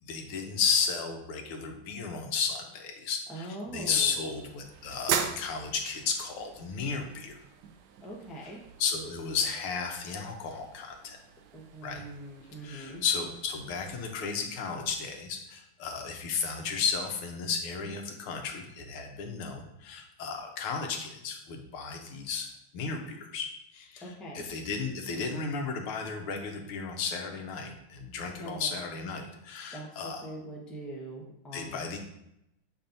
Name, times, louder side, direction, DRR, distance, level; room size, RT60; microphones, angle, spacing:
voice 1, 0.0-7.4 8.8-11.2 11.8-12.0 12.6-22.5 22.7-30.3 31.5-32.0, left 5 dB, 90° left, 3 dB, 1.7 m, -33 dB
voice 2, 3.3-4.4 8.0-8.6 11.5-13.0 24.0-24.4 28.2-28.8 29.7-32.0, right 1 dB, ahead, -4 dB, 0.5 m, -42 dB
sound 1, 3.6-14.5, right 7 dB, 85° right, 0.9 m, -40 dB
7.0 x 5.3 x 2.6 m, 0.83 s
omnidirectional pair, 2.3 m